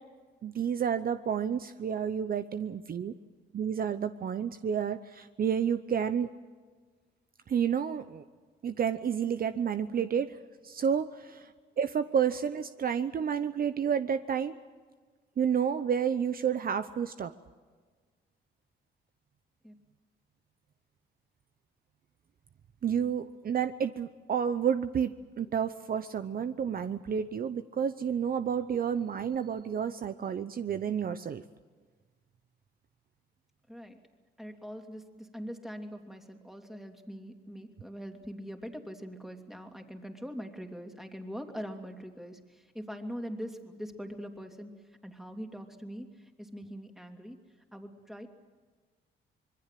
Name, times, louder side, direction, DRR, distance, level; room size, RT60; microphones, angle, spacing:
voice 1, 0.4-3.1 3.5-6.3 7.5-8.2 8.6-10.4 10.6-11.5 11.8-14.6 15.4-17.3 22.8-31.4, right 8 dB, 50° right, 11 dB, 0.8 m, -30 dB
voice 2, 33.7-34.0 34.4-47.4 47.7-48.3, equal, ahead, 4 dB, 2.9 m, -42 dB
26.0 x 21.5 x 7.6 m, 1.5 s
cardioid pair, 90°, 20 cm